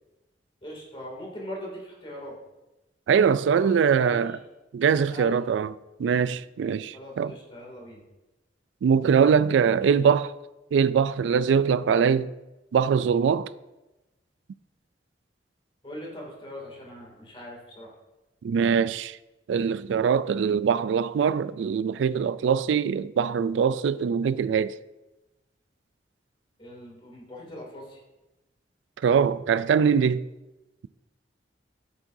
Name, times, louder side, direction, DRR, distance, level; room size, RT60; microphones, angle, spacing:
voice 1, 0.6-2.4 3.5-4.4 4.9-5.5 6.9-8.0 9.8-10.0 15.8-17.9 26.6-28.0, equal, 30° left, 2.5 m, -41 dB
voice 2, 3.1-4.4 4.7-5.7 6.0-7.3 8.8-10.3 10.7-12.3 12.7-13.5 18.4-19.2 19.5-24.8 29.0-30.3, right 6 dB, 80° right, 0.3 m, -22 dB
12.5 x 7.4 x 2.7 m
head